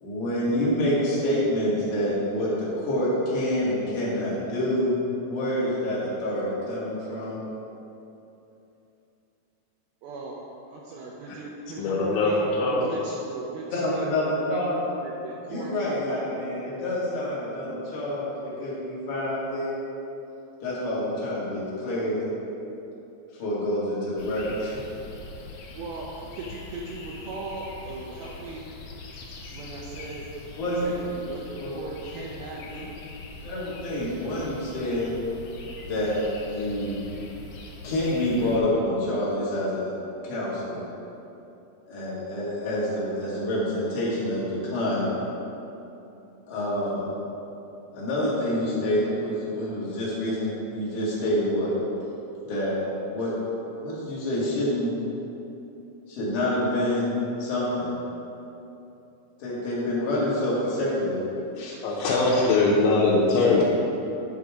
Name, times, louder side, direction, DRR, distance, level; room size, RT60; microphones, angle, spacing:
voice 1, 0.0-4.9 5.3-7.4 13.7-14.8 15.5-19.8 20.6-22.3 23.3-24.8 30.6-30.9 31.6-31.7 33.4-35.1 35.8-36.2 36.5-37.0 37.8-39.9 40.2-40.8 41.9-45.1 46.5-47.1 47.9-51.7 52.5-52.7 53.1-53.3 53.8-54.9 56.1-57.1 57.4-57.9 59.4-61.2, left 1 dB, 45° left, -8 dB, 2.3 m, -27 dB
voice 2, 10.0-10.4 10.7-15.7 25.7-28.6 29.5-30.3 30.6-33.0, right 3 dB, 90° right, -3 dB, 2.1 m, -38 dB
voice 3, 11.8-12.9 61.6-63.6, left 3 dB, 90° left, -6 dB, 3.2 m, -22 dB
sound 1, 24.2-38.6, left 3 dB, 70° left, 2.4 m, -42 dB
9.6 x 4.6 x 4.9 m, 2.9 s
omnidirectional pair, 5.1 m